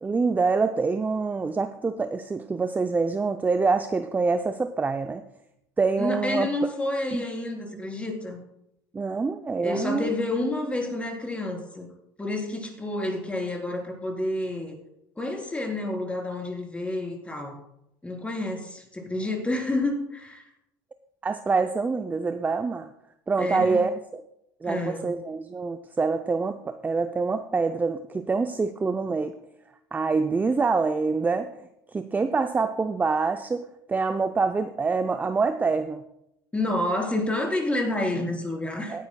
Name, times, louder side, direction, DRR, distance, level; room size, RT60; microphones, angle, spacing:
voice 1, 0.0-5.2 5.8-6.5 7.1-7.2 8.9-10.1 21.2-22.9 23.3-24.2 24.6-29.4 29.9-31.5 31.9-36.0 38.9-39.1, right 4 dB, 15° right, 9 dB, 0.5 m, -26 dB
voice 2, 6.0-8.4 9.6-11.9 12.2-14.7 15.2-17.6 18.0-20.5 23.4-23.9 24.6-25.2 36.5-39.1, left 1 dB, 10° left, 1 dB, 3.8 m, -29 dB
17.5 x 10.5 x 2.3 m, 0.82 s
hypercardioid pair, 85°, 11 cm